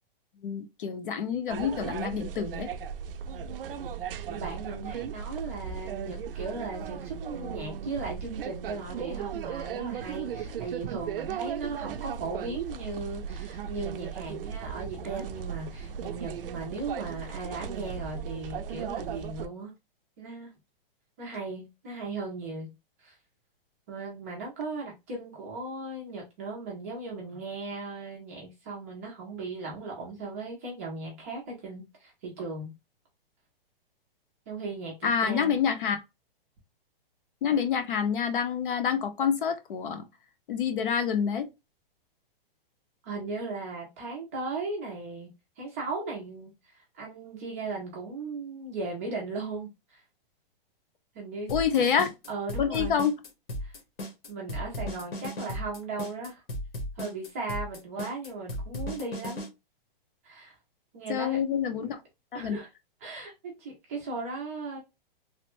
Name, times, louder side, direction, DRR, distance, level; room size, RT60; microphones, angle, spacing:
voice 1, 0.4-2.7 35.0-36.0 37.4-40.0 40.5-41.5 51.5-52.1 52.6-53.1 61.1-62.0 62.3-62.6, left 7 dB, 60° left, 0.7 m, -27 dB
sound 1, 1.5-19.5, right 7 dB, 70° right, 0.5 m, -37 dB
voice 2, 4.3-19.7 20.2-20.5 21.2-22.7 23.0-23.2 23.9-32.7 34.5-35.6 43.0-50.0 51.1-51.9 52.3-52.9 53.6-53.8 54.3-56.4 57.0-59.5 60.2-60.6 60.9-61.4 61.7-61.9 62.3-62.7 63.0-64.8, right 3 dB, 15° right, 0.5 m, -37 dB
sound 2, 51.5-59.5, left 1 dB, 80° left, 1.2 m, -36 dB
3.2 x 2.1 x 2.9 m
hypercardioid pair, 175°, 29 cm